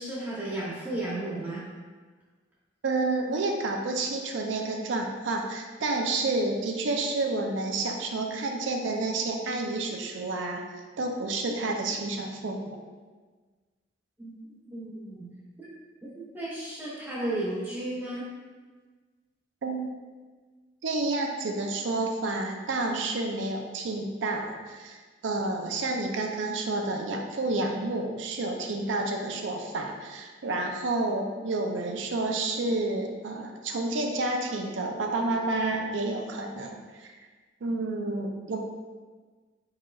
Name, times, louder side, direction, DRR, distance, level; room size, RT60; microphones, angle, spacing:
voice 1, 0.0-1.6 11.5-11.6 14.2-14.3 14.6-15.3 15.6-15.7 16.0-18.3, right 1 dB, 10° right, -8 dB, 0.9 m, -34 dB
voice 2, 2.8-10.6 11.0-12.8 19.6-19.9 20.8-37.1 37.6-38.6, right 2 dB, 90° right, 2 dB, 0.5 m, -30 dB
4.7 x 4.2 x 2.4 m, 1.4 s
head